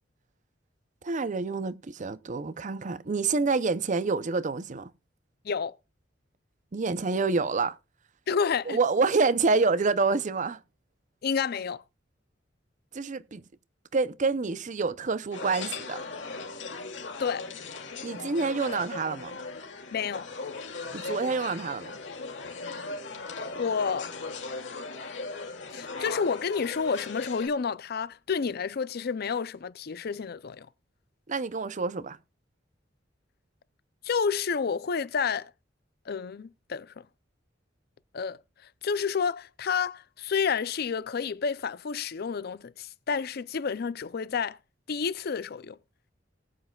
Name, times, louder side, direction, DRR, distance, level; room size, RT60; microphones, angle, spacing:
voice 1, 1.0-4.9 6.7-7.8 8.7-10.6 12.9-13.4 13.9-16.0 18.0-19.4 20.9-21.9 31.3-32.2, right 4 dB, 40° right, 0.6 m, -27 dB
voice 2, 5.4-5.8 8.3-8.8 11.2-11.8 17.2-17.4 19.9-20.3 23.6-24.1 25.7-30.7 34.0-35.5 36.1-36.9 38.1-38.4 38.8-44.6 44.9-45.8, left 6 dB, 55° left, 0.5 m, -30 dB
sound 1, 15.3-27.5, left 3 dB, 70° left, 2.4 m, -38 dB
19.0 x 7.9 x 2.3 m
head